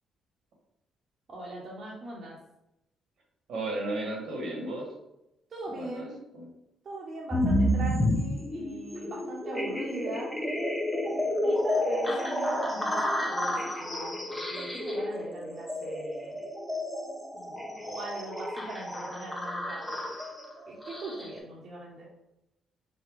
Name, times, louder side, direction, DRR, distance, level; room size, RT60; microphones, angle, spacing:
voice 1, 1.3-2.4 5.5-6.2 6.8-10.3 11.4-16.4 17.3-20.0 20.7-22.1, right 2 dB, 50° right, -5 dB, 1.1 m, -41 dB
voice 2, 3.5-4.9 5.7-6.5, right 2 dB, 70° right, -1 dB, 1.5 m, -34 dB
sound 1, 7.3-21.4, left 1 dB, 10° left, 0.8 m, -30 dB
4.2 x 2.2 x 4.7 m, 0.86 s
cardioid pair, 90°, 0 cm